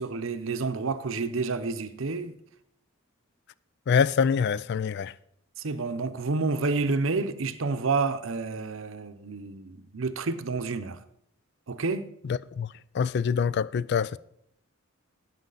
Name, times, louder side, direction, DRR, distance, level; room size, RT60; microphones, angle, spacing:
voice 1, 0.0-2.3 5.6-11.0 11.7-12.1, right 4 dB, 70° right, 0.7 m, -29 dB
voice 2, 3.9-5.1 12.2-12.7 12.9-14.2, left 6 dB, 55° left, 0.3 m, -25 dB
13.0 x 9.1 x 3.9 m
head